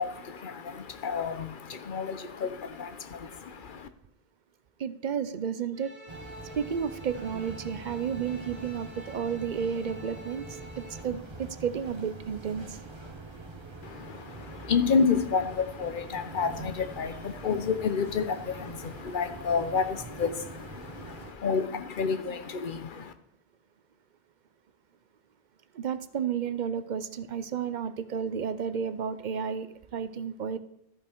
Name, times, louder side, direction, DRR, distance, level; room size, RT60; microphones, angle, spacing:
voice 1, 0.0-3.9 13.8-23.1, left 5 dB, 55° left, 0.9 m, -30 dB
voice 2, 4.8-5.9 6.6-10.5 10.8-12.8 25.7-30.6, right 7 dB, 55° right, 0.7 m, -32 dB
sound 1, 5.7-11.0, equal, 70° right, 2.2 m, -48 dB
sound 2, 6.1-21.3, right 2 dB, 25° right, 1.2 m, -44 dB
13.5 x 5.4 x 4.6 m
omnidirectional pair, 1.0 m